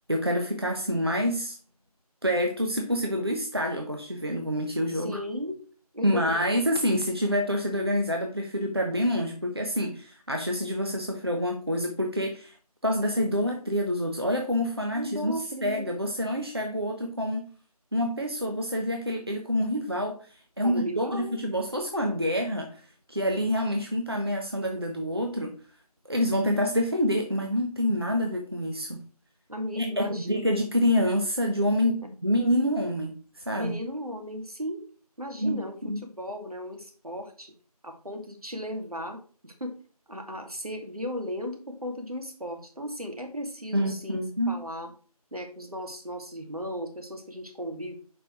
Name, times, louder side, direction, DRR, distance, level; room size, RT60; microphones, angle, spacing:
voice 1, 0.1-1.6 2.2-5.2 6.0-12.5 12.8-17.4 17.9-22.8 23.1-25.5 26.1-29.0 29.8-33.7 35.4-36.0 43.7-44.6, equal, 40° right, 2 dB, 0.9 m, -27 dB
voice 2, 4.9-5.6 5.9-6.3 14.9-15.9 20.6-21.4 29.5-30.6 33.5-34.8 35.2-37.5 37.8-39.8 40.1-44.9 45.3-48.0, equal, 70° right, 4 dB, 2.4 m, -36 dB
7.1 x 5.5 x 4.7 m, 0.40 s
figure-of-eight pair, 175°, 20 cm